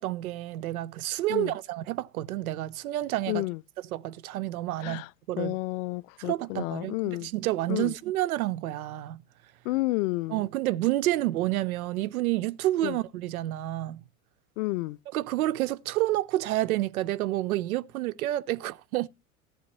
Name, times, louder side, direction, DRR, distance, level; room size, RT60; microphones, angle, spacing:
voice 1, 0.0-3.4 3.9-5.0 5.3-5.6 6.2-9.2 10.3-14.0 15.1-19.1, right 16 dB, 75° right, 0.6 m, -29 dB
voice 2, 3.3-3.6 4.8-5.1 5.4-7.3 7.7-7.9 9.6-10.4 12.8-13.0 14.6-15.0, left 21 dB, 65° left, 0.5 m, -30 dB
14.5 x 8.4 x 3.0 m
hypercardioid pair, 90°, 43 cm